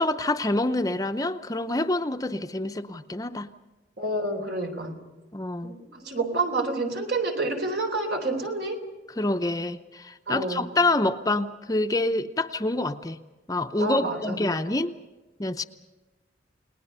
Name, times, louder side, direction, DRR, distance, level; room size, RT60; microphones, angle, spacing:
voice 1, 0.0-3.5 5.3-5.8 9.2-13.2 13.5-14.9 15.4-15.6, left 2 dB, 20° left, 8 dB, 0.7 m, -26 dB
voice 2, 4.0-4.9 5.6-8.8 10.3-10.6 13.8-14.4, right 2 dB, 70° right, 4 dB, 3.8 m, -28 dB
30.0 x 19.5 x 5.5 m, 1.2 s
head